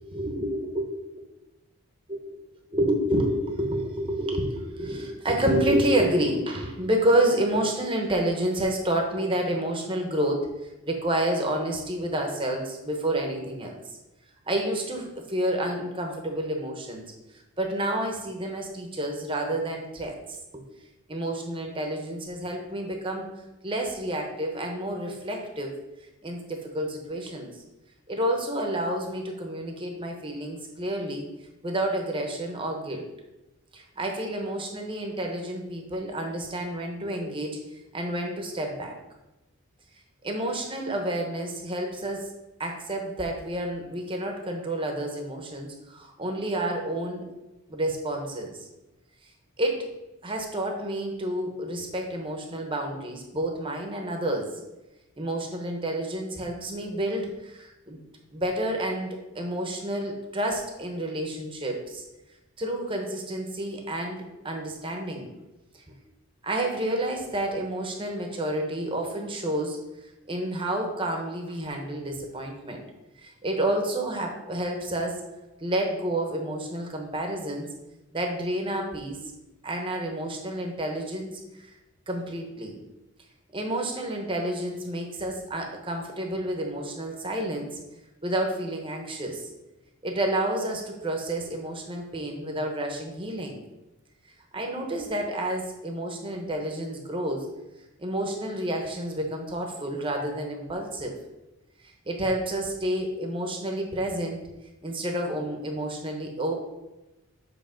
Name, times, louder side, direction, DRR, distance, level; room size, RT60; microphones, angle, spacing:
voice 1, 0.1-0.9 2.1-2.2 2.7-10.5 10.9-13.8 14.5-17.1 17.6-20.2 20.5-20.6 21.1-23.3 23.6-25.7 26.2-27.6 28.1-31.2 31.6-33.1 33.7-37.6 37.9-39.0 40.2-42.3 42.6-47.2 47.7-48.7 49.6-49.9 50.2-54.5 55.2-58.0 58.3-62.0 62.6-65.3 65.9-66.0 66.4-69.8 70.3-72.8 73.2-75.2 75.6-77.7 78.1-79.2 79.6-81.3 81.6-81.7 82.1-82.7 83.5-87.7 88.2-89.4 90.0-93.6 94.5-97.5 98.0-101.2 102.1-104.4 104.8-106.5, right 1 dB, 25° right, 2 dB, 0.9 m, -29 dB
7.5 x 3.2 x 5.1 m, 1.0 s
head